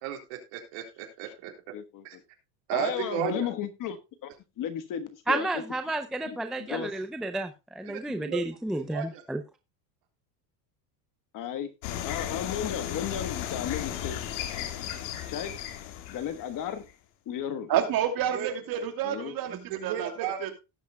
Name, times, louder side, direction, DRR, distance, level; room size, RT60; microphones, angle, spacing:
voice 1, 0.0-1.5 2.0-2.2 2.7-3.5 7.9-8.4 8.7-9.2 18.3-18.8 19.5-20.4, right 10 dB, 65° right, 3 dB, 3.8 m, -34 dB
voice 2, 1.7-2.2 2.7-4.0 4.2-4.3 4.6-5.5 6.3-6.9 11.3-11.7 12.0-14.2 15.3-15.6 16.1-16.9 17.3-17.7 19.0-19.3, left 9 dB, 40° left, 10 dB, 1.3 m, -34 dB
voice 3, 5.3-9.4, right 2 dB, ahead, 7 dB, 0.5 m, -31 dB
sound 1, 11.8-16.9, left 11 dB, 75° left, 2.0 m, -35 dB
voice 4, 17.7-20.5, right 9 dB, 45° right, 5 dB, 2.7 m, -29 dB
17.5 x 8.2 x 2.2 m, 0.26 s
cardioid pair, 145°, 49 cm